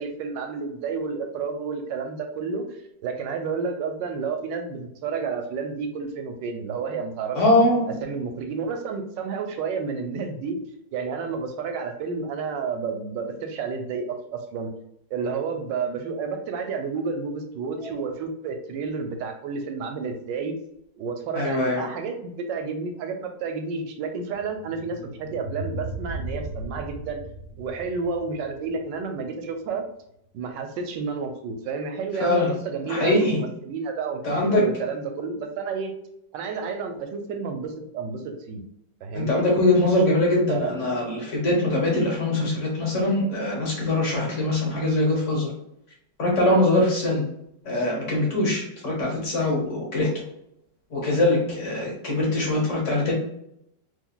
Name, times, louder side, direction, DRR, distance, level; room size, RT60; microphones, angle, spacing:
voice 1, 0.0-7.4 8.0-10.6 10.9-14.7 15.1-20.5 21.0-27.2 27.6-29.9 30.3-35.9 36.3-38.6 39.0-39.4 40.5-40.7, right 5 dB, 80° right, 5 dB, 1.3 m, -31 dB
voice 2, 7.3-8.0 21.3-21.8 32.2-32.5 32.9-33.4 34.2-34.7 39.1-45.5 46.2-47.2 47.6-50.2 50.9-53.1, left 1 dB, 50° left, -3 dB, 1.2 m, -22 dB
sound 1, 24.3-29.5, right 2 dB, 60° right, 0.6 m, -37 dB
3.7 x 3.0 x 2.2 m, 0.76 s
omnidirectional pair, 2.0 m